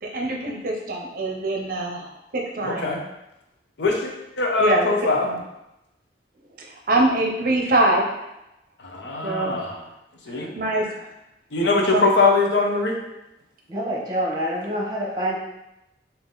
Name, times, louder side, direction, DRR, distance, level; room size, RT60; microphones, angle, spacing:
voice 1, 0.0-2.9 4.6-4.9 5.2-5.4 6.6-8.3 9.2-9.6 10.3-11.1 11.8-12.0, right 2 dB, 50° right, 0 dB, 0.6 m, -24 dB
voice 2, 2.6-3.0 3.8-5.3 8.8-9.8 10.3-10.5 11.5-13.0, left 3 dB, 80° left, 0 dB, 0.7 m, -22 dB
voice 3, 13.7-15.4, equal, 25° right, -5 dB, 1.0 m, -26 dB
3.7 x 2.8 x 3.8 m, 0.89 s
head